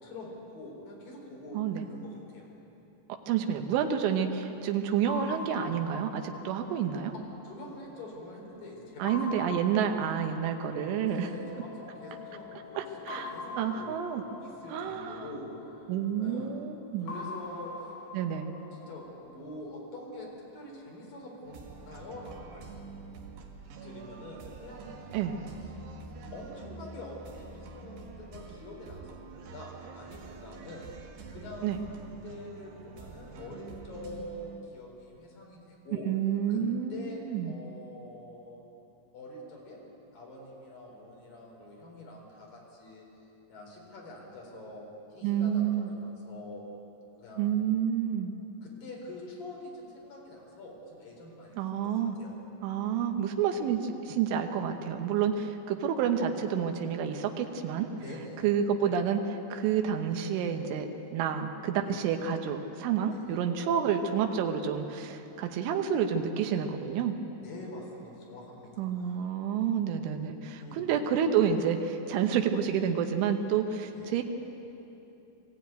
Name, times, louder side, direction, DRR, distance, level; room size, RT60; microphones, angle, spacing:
voice 1, 0.0-2.5 7.1-9.4 11.1-14.0 14.4-15.9 16.2-16.5 17.0-17.9 18.7-23.1 23.8-25.1 26.3-30.9 31.3-36.1 36.5-36.6 36.9-38.6 39.1-43.1 43.5-46.6 47.2-47.5 48.6-51.9 52.2-52.3 58.0-58.5 63.1-63.4 67.4-69.3 69.5-69.6 70.6-71.0 73.9-74.2, left 1 dB, 50° left, -2 dB, 5.6 m, -45 dB
voice 2, 1.6-1.9 3.3-7.1 9.0-11.3 12.8-14.2 14.7-15.3 15.9-17.1 18.1-18.5 25.1-25.4 31.6-31.8 35.9-37.6 45.2-45.9 47.4-48.3 51.6-52.2 52.6-57.9 58.4-67.2 68.8-74.2, right 8 dB, 90° right, 5 dB, 3.6 m, -29 dB
sound 1, 5.1-8.4 9.1-12.0 13.1-16.2 17.1-20.2, left 2 dB, 90° left, 4.5 m, -44 dB
Wind instrument woodwind instrument, 10.4-15.7, left 9 dB, 20° left, 1.8 m, -51 dB
sound 2, 21.4-34.6, right 4 dB, 65° right, 3.4 m, -46 dB
21.0 x 15.5 x 9.3 m, 2.9 s
omnidirectional pair, 5.4 m